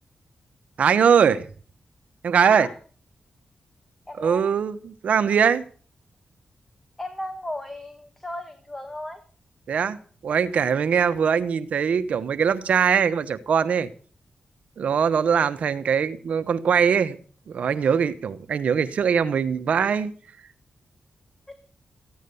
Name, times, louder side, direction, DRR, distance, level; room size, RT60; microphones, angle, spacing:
voice 1, 0.8-1.5 2.2-2.7 4.2-5.6 9.7-10.0 10.2-13.9 14.8-17.2 17.5-20.1, right 7 dB, 80° right, 1.1 m, -21 dB
voice 2, 4.1-4.4 7.0-9.2 21.5-21.6, left 1 dB, 15° left, 1.9 m, -35 dB
15.0 x 9.4 x 7.0 m
cardioid pair, 70°, 2 cm